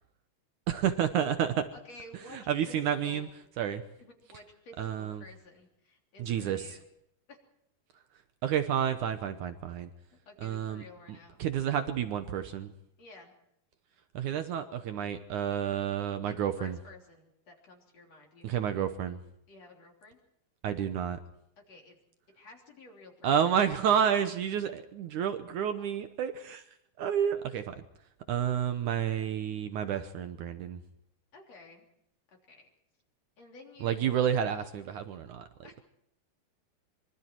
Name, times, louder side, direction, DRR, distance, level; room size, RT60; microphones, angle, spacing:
voice 1, 0.7-1.6 2.3-3.3 3.6-3.8 4.8-5.2 6.2-6.8 8.4-9.9 10.4-10.8 11.4-12.7 14.1-16.8 18.4-19.2 20.6-21.2 23.2-26.6 27.0-27.8 28.3-30.8 33.8-35.5, right 9 dB, 75° right, 9 dB, 1.9 m, -30 dB
voice 2, 1.7-2.4 2.7-3.2 4.0-6.8 7.3-7.4 10.3-11.4 13.0-13.3 16.2-18.7 19.5-20.2 21.7-22.0 22.3-23.3 31.3-31.9 32.5-32.7 33.4-34.3 35.6-35.8, left 2 dB, 40° left, 1 dB, 4.2 m, -52 dB
25.0 x 24.0 x 4.6 m, 0.74 s
omnidirectional pair, 4.8 m